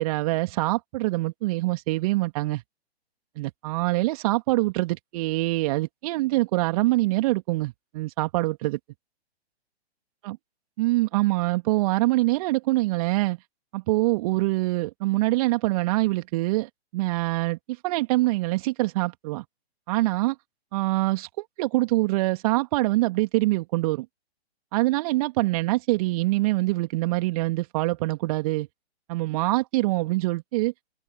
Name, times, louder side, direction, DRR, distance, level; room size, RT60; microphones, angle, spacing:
voice 1, 0.0-2.6 3.4-8.8 10.2-10.4 10.8-13.4 13.7-17.6 17.8-19.4 19.9-20.4 20.7-21.3 21.6-24.1 24.7-28.7 29.1-30.7, right 20 dB, 35° right, 2.9 m, -24 dB
open air
figure-of-eight pair, 125°, 33 cm